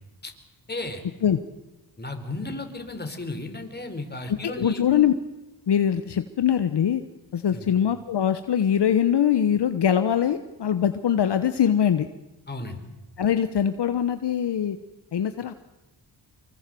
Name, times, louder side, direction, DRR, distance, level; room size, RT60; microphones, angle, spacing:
voice 1, 0.7-1.0 2.0-4.8 7.5-7.7 12.5-12.8, left 2 dB, 20° left, 6 dB, 4.4 m, -34 dB
voice 2, 4.3-5.1 5.7-7.0 7.3-12.1 13.2-14.8 15.1-15.5, left 9 dB, 60° left, 10 dB, 1.2 m, -22 dB
25.5 x 23.0 x 7.8 m, 1.0 s
cardioid pair, 85°, 46 cm